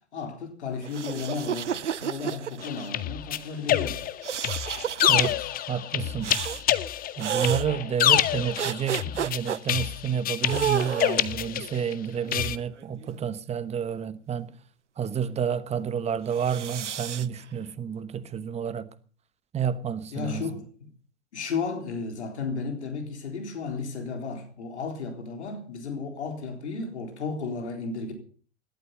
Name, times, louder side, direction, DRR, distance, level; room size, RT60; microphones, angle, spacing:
voice 1, 0.1-4.0 20.1-20.9 21.3-28.1, left 4 dB, 70° left, 4.0 m, -34 dB
sound 1, 0.8-2.9 4.2-5.3 6.2-6.6 7.2-7.7 8.6-9.6 10.4-11.3 12.1-13.3 16.3-17.3, right 8 dB, 90° right, 0.6 m, -31 dB
sound 2, 2.6-11.9 12.3-12.6, left 12 dB, 25° left, 0.8 m, -27 dB
voice 2, 5.1-6.4 7.2-14.5 15.0-18.9 19.5-20.6, right 8 dB, 20° right, 1.1 m, -30 dB
17.5 x 12.0 x 5.5 m
figure-of-eight pair, 95°, 35 cm